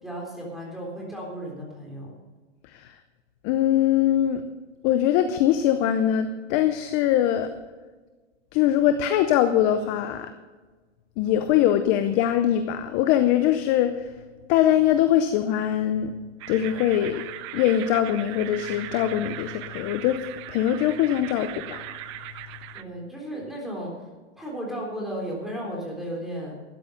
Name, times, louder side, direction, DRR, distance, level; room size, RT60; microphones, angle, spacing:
voice 1, 0.0-2.1 22.7-24.1 24.4-26.6, equal, ahead, -2 dB, 3.7 m, -34 dB
voice 2, 2.6-2.9 3.4-4.5 4.8-7.5 8.5-10.3 11.2-14.1 14.5-16.1 16.5-17.2 17.5-21.8, left 11 dB, 25° left, 9 dB, 0.6 m, -22 dB
sound 1, 16.4-22.8, right 13 dB, 25° right, 0.5 m, -39 dB
13.0 x 10.5 x 6.5 m, 1.3 s
hypercardioid pair, 150°, 35 cm